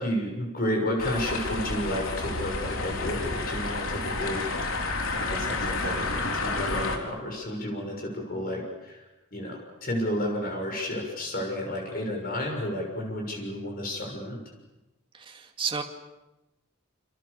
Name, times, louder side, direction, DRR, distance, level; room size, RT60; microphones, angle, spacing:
voice 1, 0.0-14.4, left 1 dB, 45° left, 1 dB, 6.5 m, -32 dB
sound 1, 1.0-7.0, left 3 dB, 90° left, 4.1 m, -30 dB
Drum, 5.8-7.8, right 2 dB, 60° right, 3.8 m, -43 dB
voice 2, 15.1-15.8, right 6 dB, 25° right, 4 dB, 2.4 m, -32 dB
29.5 x 28.0 x 6.9 m, 1.0 s
head